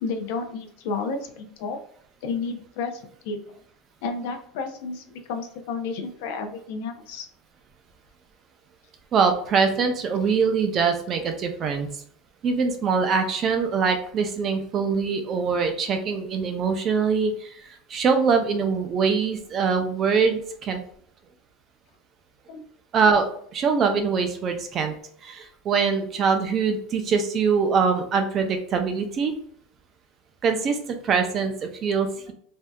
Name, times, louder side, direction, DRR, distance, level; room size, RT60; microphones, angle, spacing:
voice 1, 0.0-1.8 2.2-3.4 4.0-7.3 22.5-22.6, left 4 dB, 65° left, 6 dB, 0.6 m, -31 dB
voice 2, 9.1-11.9 12.4-17.5 17.9-20.8 22.9-24.9 25.2-29.3 30.4-32.3, right 5 dB, 25° right, 6 dB, 0.5 m, -23 dB
3.4 x 2.7 x 2.2 m, 0.63 s
supercardioid pair, 170°, 0 cm